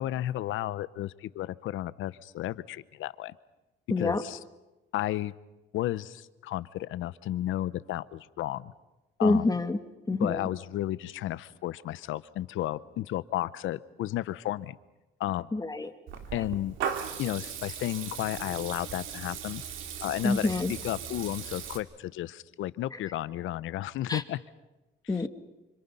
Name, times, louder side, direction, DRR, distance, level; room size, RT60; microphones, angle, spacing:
voice 1, 0.0-3.3 4.0-4.4 4.9-5.3 5.7-8.7 9.2-9.5 10.2-14.8 15.2-15.5 16.3-16.7 17.2-19.6 20.0-24.4, left 14 dB, 85° left, 17 dB, 0.8 m, -33 dB
voice 2, 3.9-4.2 9.2-9.8 10.1-10.5 15.5-15.9 20.2-20.7 24.1-24.2 25.1-25.3, left 2 dB, 20° left, 7 dB, 2.1 m, -26 dB
Water tap faucet / Liquid, 16.1-21.8, right 8 dB, 85° right, 2.3 m, -38 dB
29.5 x 26.5 x 5.6 m, 1.0 s
cardioid pair, 90°, 20 cm